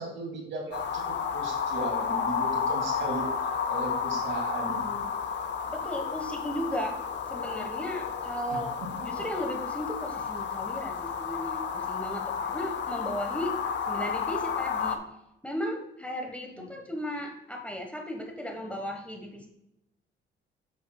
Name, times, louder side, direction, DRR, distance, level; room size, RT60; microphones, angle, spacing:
voice 1, 0.0-3.3 3.7-5.0 8.5-9.4 16.6-16.7, right 2 dB, 70° right, 0 dB, 2.5 m, -37 dB
sound 1, 0.7-15.0, left 6 dB, 60° left, 0.8 m, -32 dB
voice 2, 5.7-7.0 7.3-8.7 9.0-13.6 13.9-15.0 15.4-19.5, equal, 5° left, 2 dB, 1.3 m, -35 dB
8.2 x 7.2 x 2.3 m, 0.86 s
cardioid pair, 90°, 20 cm